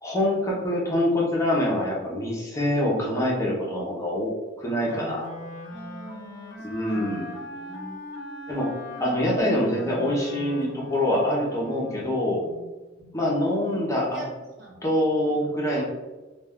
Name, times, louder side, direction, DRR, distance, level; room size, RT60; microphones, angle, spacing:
voice 1, 0.0-4.3 4.6-5.3 6.6-7.3 8.5-8.7 9.0-12.4 13.1-14.2 14.8-15.8, left 1 dB, 15° left, -4 dB, 0.5 m, -25 dB
Wind instrument woodwind instrument, 4.8-12.3, left 1 dB, 65° left, 0.5 m, -40 dB
voice 2, 5.7-7.2 7.5-8.0 9.2-9.6 12.4-12.6 13.0-13.2 14.1-14.8, right 1 dB, 60° right, -1 dB, 0.7 m, -43 dB
2.2 x 2.1 x 3.4 m, 1.2 s
head